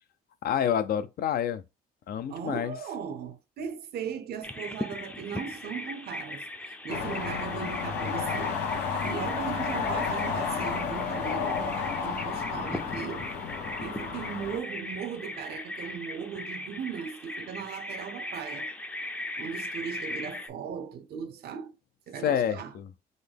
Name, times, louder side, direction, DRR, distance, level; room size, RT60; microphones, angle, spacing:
voice 1, 0.4-1.6 2.1-2.8 22.2-22.9, left 9 dB, 60° left, 0.5 m, -28 dB
voice 2, 2.3-6.5 6.8-8.6 9.0-13.3 13.8-18.7 19.4-21.8 22.1-22.7, right 7 dB, 65° right, 0.6 m, -38 dB
Bird vocalization bird call bird song, 4.4-20.5, left 1 dB, 10° left, 0.5 m, -39 dB
sound 1, 6.9-14.6, left 5 dB, 75° left, 0.9 m, -32 dB
3.8 x 2.2 x 3.4 m
supercardioid pair, 80°, 18 cm